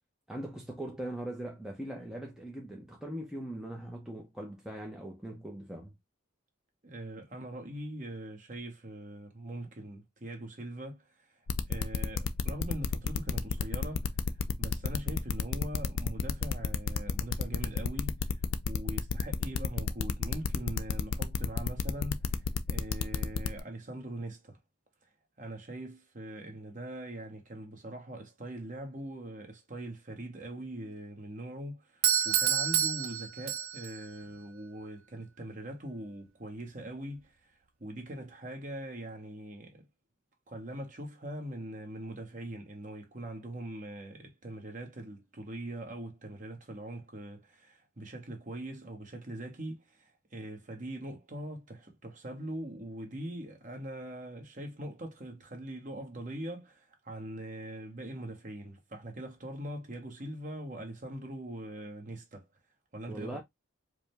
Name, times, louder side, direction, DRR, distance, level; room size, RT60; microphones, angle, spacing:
voice 1, 0.3-5.9 63.1-63.4, right 1 dB, 5° right, 0.6 m, -40 dB
voice 2, 6.8-14.3 14.6-18.4 18.7-24.6 25.4-37.5 37.8-39.9 40.5-62.5 62.9-63.4, right 1 dB, 40° right, 1.1 m, -42 dB
sound 1, 11.5-23.6, left 6 dB, 65° left, 0.4 m, -31 dB
Doorbell, 32.0-34.0, right 9 dB, 80° right, 0.5 m, -28 dB
4.8 x 2.2 x 3.2 m
head